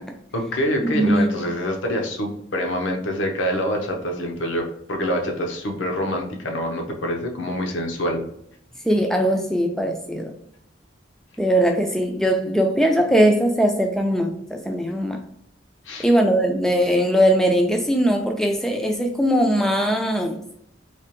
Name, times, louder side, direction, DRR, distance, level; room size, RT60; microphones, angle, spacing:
voice 1, 0.3-8.2 15.9-16.1, equal, 75° left, 2 dB, 0.7 m, -26 dB
voice 2, 0.9-1.3 8.8-10.4 11.4-15.2 16.0-20.4, equal, ahead, 3 dB, 0.3 m, -20 dB
3.3 x 2.9 x 2.9 m, 0.72 s
head